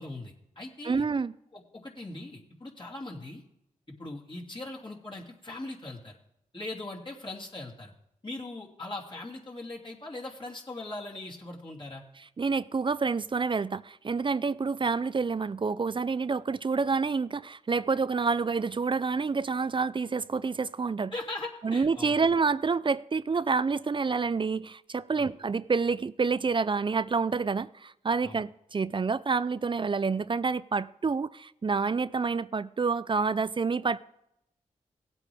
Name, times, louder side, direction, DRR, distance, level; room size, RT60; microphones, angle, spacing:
voice 1, 0.0-1.0 1.5-3.4 4.0-6.2 6.5-7.9 8.2-12.0 21.1-22.2 25.2-25.3 28.2-28.4, left 2 dB, 35° left, 2.8 m, -40 dB
voice 2, 0.8-1.3 12.4-21.1 21.6-34.0, right 4 dB, 35° right, 0.4 m, -28 dB
17.0 x 8.3 x 3.5 m
cardioid pair, 50°, 14 cm